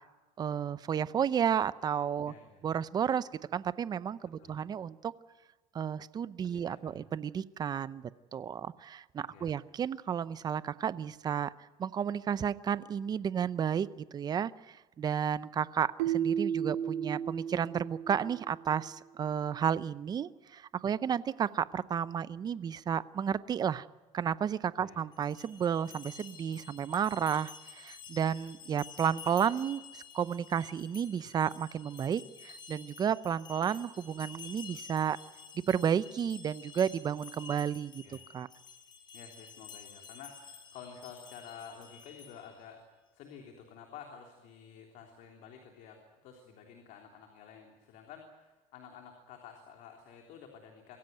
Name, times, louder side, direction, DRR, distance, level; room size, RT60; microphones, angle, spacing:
voice 1, 0.4-2.3 2.6-5.1 5.7-23.9 24.1-35.2 35.5-38.0 38.3-38.5, right 8 dB, 25° right, 17 dB, 0.7 m, -32 dB
voice 2, 2.2-2.6 4.4-4.6 6.4-7.1 9.3-9.5 24.8-25.0 38.0-38.2 39.1-42.8 43.1-51.0, left 7 dB, 55° left, 3 dB, 3.4 m, -51 dB
Keyboard (musical), 16.0-18.8, right 9 dB, 75° right, 1.2 m, -34 dB
sound 1, 25.1-42.6, left 6 dB, 30° left, 5.3 m, -51 dB
24.5 x 16.5 x 9.2 m, 1.2 s
cardioid pair, 140°, 15 cm